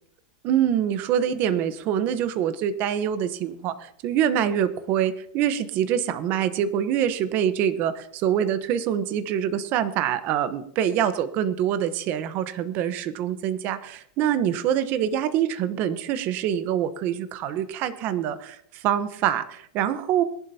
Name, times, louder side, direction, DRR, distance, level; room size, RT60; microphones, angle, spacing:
voice 1, 0.4-20.2, right 9 dB, 40° right, 12 dB, 1.0 m, -25 dB
21.5 x 11.0 x 2.8 m, 0.68 s
supercardioid pair, 150°, 5 cm